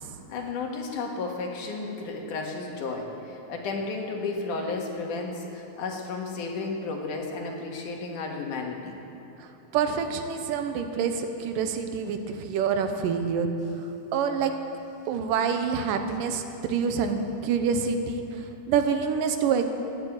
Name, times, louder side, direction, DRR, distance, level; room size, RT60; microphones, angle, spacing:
voice 1, 0.3-9.0, left 3 dB, 70° left, 1 dB, 3.1 m, -33 dB
voice 2, 9.7-13.5 14.1-14.5 15.1-19.6, right 6 dB, 85° right, 7 dB, 2.5 m, -27 dB
14.0 x 10.0 x 8.8 m, 2.9 s
omnidirectional pair, 3.8 m